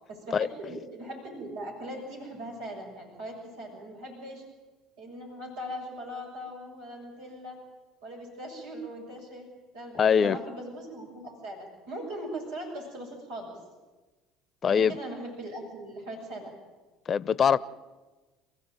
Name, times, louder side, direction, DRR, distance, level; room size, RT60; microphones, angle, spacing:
voice 1, 0.1-4.4 5.0-7.6 8.0-9.5 9.7-13.6 14.6-16.5, right 1 dB, 80° right, 7.0 m, -40 dB
voice 2, 10.0-10.4 14.6-15.0 17.1-17.6, left 7 dB, 40° left, 0.9 m, -22 dB
28.5 x 15.5 x 9.2 m
hypercardioid pair, 70°, 0 cm